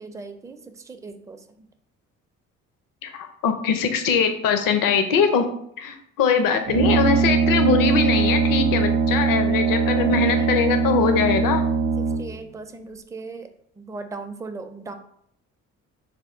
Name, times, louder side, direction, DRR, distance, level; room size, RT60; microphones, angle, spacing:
voice 1, 0.0-1.4 9.9-10.5 12.2-13.5 13.8-14.9, right 3 dB, 10° right, 7 dB, 0.4 m, -38 dB
voice 2, 3.0-5.5 5.8-11.6, left 5 dB, 65° left, 7 dB, 0.7 m, -22 dB
Brass instrument, 6.7-12.4, right 5 dB, 80° right, 0.5 m, -21 dB
3.5 x 2.3 x 4.3 m, 0.70 s
hypercardioid pair, 50°, 36 cm